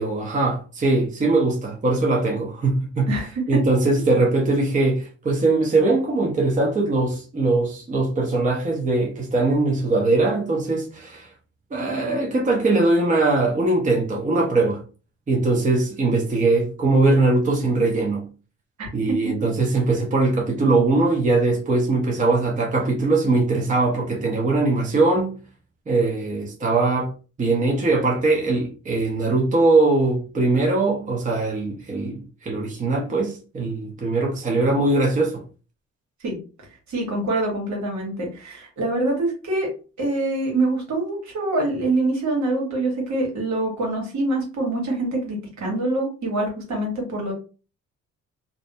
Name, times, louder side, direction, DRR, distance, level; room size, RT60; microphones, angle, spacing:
voice 1, 0.0-3.1 3.5-11.3 11.7-14.8 15.3-18.3 18.9-25.4 25.9-27.1 27.4-35.4, right 2 dB, 25° right, 0.7 m, -21 dB
voice 2, 3.1-3.6 18.8-18.9 36.2-36.4 36.9-39.7 40.0-47.3, right 2 dB, 70° right, 1.3 m, -25 dB
2.6 x 2.1 x 2.6 m
cardioid pair, 90°, 30 cm